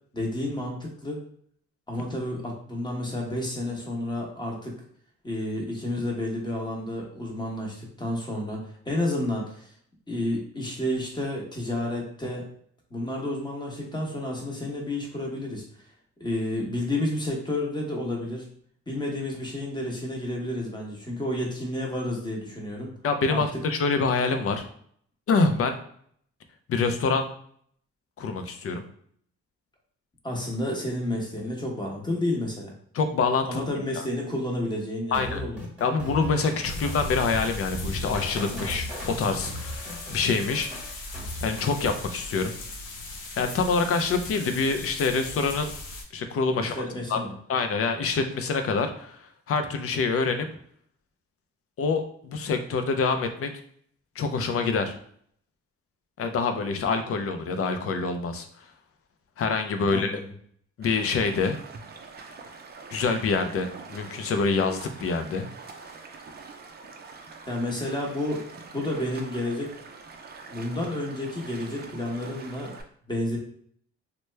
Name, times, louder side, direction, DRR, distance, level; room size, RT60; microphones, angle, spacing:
voice 1, 0.1-1.2 1.9-4.7 5.2-8.6 8.8-9.7 10.1-12.5 12.9-15.6 16.2-18.5 18.9-22.9 23.3-23.4 30.2-32.7 33.5-35.6 38.6-38.8 46.6-47.3 59.9-60.3 67.5-68.4 68.7-69.7 70.5-72.7 73.1-73.4, left 1 dB, 15° left, -1 dB, 1.0 m, -30 dB
voice 2, 23.0-24.6 25.3-25.8 26.7-27.3 28.2-28.8 32.9-33.6 35.1-35.4 35.8-40.7 41.4-42.5 43.4-45.7 46.1-46.8 47.1-47.2 47.5-49.2 49.5-50.5 51.8-53.5 54.2-54.9 56.2-58.5 59.4-60.2 60.8-61.6 62.9-65.5, left 4 dB, 50° left, 7 dB, 0.5 m, -26 dB
sound 1, 35.1-41.8, equal, 5° right, 1.3 m, -38 dB
sound 2, 36.6-46.0, left 2 dB, 80° left, 0.7 m, -38 dB
Stream, 60.8-72.8, right 4 dB, 35° right, 0.5 m, -45 dB
2.9 x 2.2 x 3.2 m, 0.62 s
cardioid pair, 90°, 30 cm